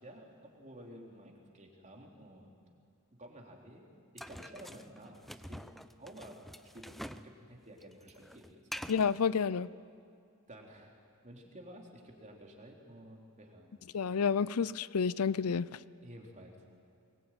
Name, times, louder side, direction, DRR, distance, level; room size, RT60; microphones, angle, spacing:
voice 1, 0.0-2.6 3.2-3.8 4.1-6.4 6.7-8.9 10.5-11.0 11.2-13.8 16.0-16.6, right 1 dB, 35° right, 1 dB, 3.5 m, -52 dB
sound 1, 4.2-7.3 7.6-9.2, equal, ahead, 0.6 m, -46 dB
voice 2, 8.9-9.7 13.9-15.7, left 6 dB, 80° left, 18 dB, 0.5 m, -29 dB
23.5 x 21.5 x 9.1 m, 2.4 s
head